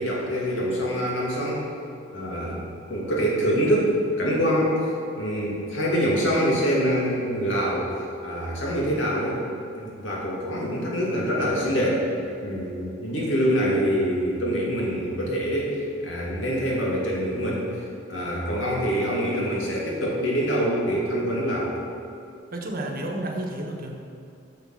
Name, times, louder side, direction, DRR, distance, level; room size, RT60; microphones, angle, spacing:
voice 1, 0.0-1.6 2.1-4.8 5.2-7.9 8.2-9.4 9.8-12.1 12.4-17.7 18.1-21.7, equal, 80° left, -4 dB, 2.4 m, -25 dB
voice 2, 22.5-24.1, right 1 dB, 50° right, 0 dB, 1.1 m, -31 dB
8.3 x 6.8 x 6.7 m, 2.7 s
head